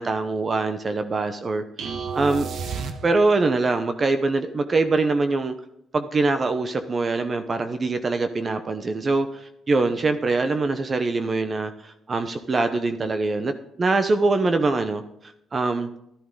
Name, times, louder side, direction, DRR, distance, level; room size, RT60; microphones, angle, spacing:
voice 1, 0.0-1.6 2.1-2.5 3.0-5.5 5.9-15.0 15.5-15.9, right 3 dB, 35° right, 9 dB, 0.9 m, -23 dB
sound 1, 1.8-3.5, right 5 dB, 70° right, 1.2 m, -31 dB
11.5 x 11.0 x 3.8 m, 0.78 s
cardioid pair, 90°, 0 cm